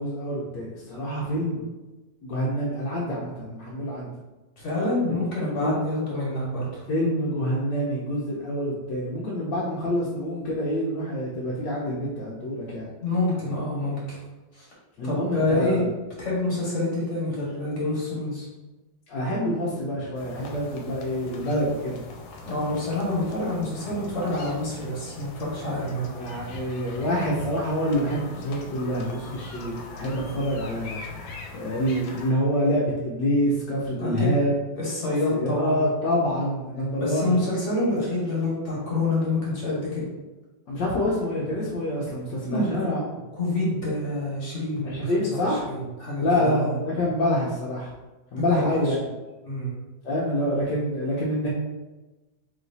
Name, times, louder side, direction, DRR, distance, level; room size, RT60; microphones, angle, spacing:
voice 1, 0.0-1.6 2.2-4.1 5.6-5.8 6.9-12.9 15.0-15.8 19.1-22.0 26.2-31.0 31.5-34.5 35.3-37.4 40.7-43.0 44.8-45.7 46.2-47.9 48.3-49.0 50.0-51.5, equal, 70° left, -6 dB, 1.3 m, -26 dB
voice 2, 4.6-6.8 13.0-14.0 14.5-14.7 15.0-15.8 16.2-18.4 22.4-26.1 33.9-34.4 34.8-35.8 37.0-40.1 42.5-42.9 43.4-46.7 48.3-48.9 49.4-49.7, left 2 dB, 40° left, -6 dB, 1.4 m, -27 dB
sound 1, 20.1-32.3, left 3 dB, 90° left, 1.4 m, -41 dB
3.2 x 3.0 x 3.9 m, 1.1 s
omnidirectional pair, 2.1 m